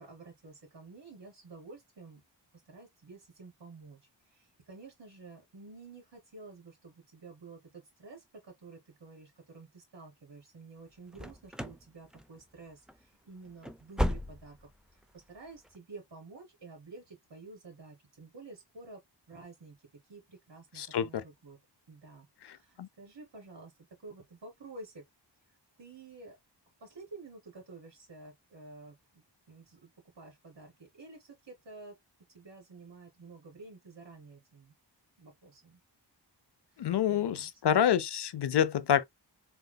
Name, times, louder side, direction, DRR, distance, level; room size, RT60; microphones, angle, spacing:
voice 1, 0.0-2.2 2.7-4.0 4.3-15.0 15.3-19.8 20.1-21.6 21.9-23.7 24.0-25.0 25.8-26.4 26.8-29.9 30.1-32.0 32.3-34.7 35.2-35.8 36.7-37.7, right 3 dB, 70° right, 3.2 m, -51 dB
sound 1, 11.1-11.9 12.1-12.6 12.9-13.0 13.5-14.7 15.0-15.1 15.6-15.8, equal, ahead, 0.4 m, -34 dB
voice 2, 20.8-21.2 22.8-22.9 36.8-39.0, left 9 dB, 65° left, 0.6 m, -27 dB
4.3 x 3.8 x 2.2 m
wide cardioid pair, 110°, 43 cm